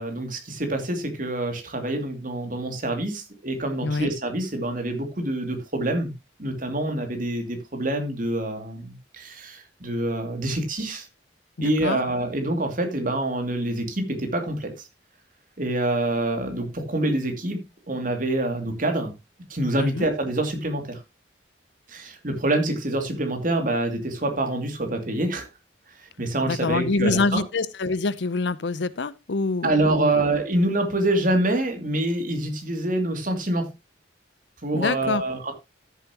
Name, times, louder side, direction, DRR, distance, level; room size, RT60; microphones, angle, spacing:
voice 1, 0.0-6.1 6.4-11.1 11.6-14.9 15.6-19.1 19.5-21.0 21.9-25.5 26.2-27.4 29.6-33.7 34.6-35.5, right 1 dB, 45° right, 2.6 m, -26 dB
voice 2, 11.6-12.0 19.8-20.1 26.5-30.2 34.7-35.2, left 3 dB, 70° left, 0.7 m, -26 dB
13.5 x 7.3 x 2.9 m
head